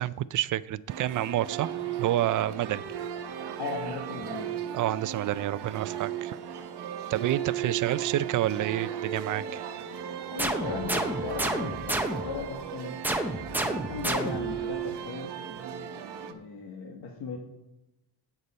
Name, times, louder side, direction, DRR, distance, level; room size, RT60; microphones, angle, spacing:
voice 1, 0.0-1.7 2.0-2.8 4.7-6.4 7.1-9.6, right 13 dB, 50° right, 15 dB, 0.4 m, -28 dB
sound 1, 0.9-16.3, right 9 dB, 85° right, 1.0 m, -36 dB
voice 2, 3.6-4.5 7.7-8.0 10.3-12.9 13.6-15.3 16.3-17.4, left 5 dB, 75° left, 0 dB, 1.5 m, -37 dB
sound 2, 10.4-12.5 13.0-14.6, right 1 dB, 5° right, 0.6 m, -30 dB
17.5 x 6.8 x 4.3 m, 0.91 s
wide cardioid pair, 175°, 39 cm